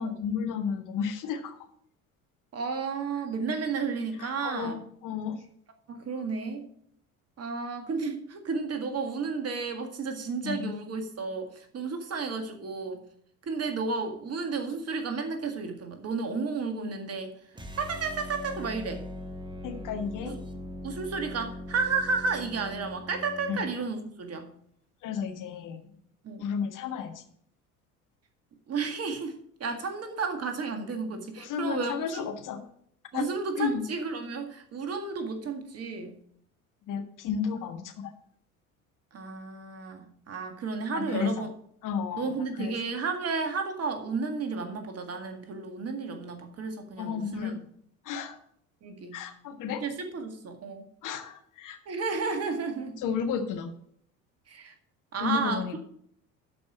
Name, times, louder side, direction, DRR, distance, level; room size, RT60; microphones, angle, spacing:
voice 1, 0.0-1.6 4.2-5.4 10.4-10.7 19.6-20.4 23.5-23.6 25.0-25.8 26.4-27.2 31.4-32.6 33.1-33.3 33.6-33.8 36.9-38.1 40.9-41.5 41.8-42.7 47.0-47.6 48.0-48.4 49.1-49.8 51.0-51.8 53.0-53.7 55.2-55.8, left 6 dB, 45° left, 6 dB, 1.4 m, -32 dB
voice 2, 2.5-4.8 5.9-6.7 7.4-13.0 13.4-17.3 17.8-19.1 20.2-20.4 20.8-24.5 26.2-26.5 28.7-32.3 33.1-36.2 39.1-41.5 42.2-47.6 48.8-49.2 49.6-50.9 51.9-53.0 54.5-54.7 55.1-55.8, right 4 dB, 35° right, 6 dB, 1.9 m, -32 dB
sound 1, 17.5-23.8, left 1 dB, 10° right, 1.3 m, -41 dB
12.0 x 5.1 x 6.2 m, 0.66 s
figure-of-eight pair, 60°, 43 cm